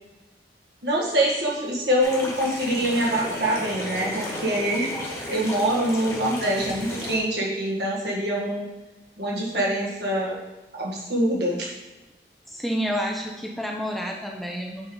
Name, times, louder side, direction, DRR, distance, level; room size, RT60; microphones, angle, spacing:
voice 1, 0.8-4.9 5.3-8.7 9.2-10.4 10.7-11.7, right 1 dB, 75° right, -3 dB, 2.0 m, -24 dB
sound 1, 2.0-7.2, left 1 dB, 15° left, 1.5 m, -34 dB
voice 2, 12.5-14.9, equal, ahead, -1 dB, 0.7 m, -29 dB
8.7 x 5.1 x 4.0 m, 1.1 s
head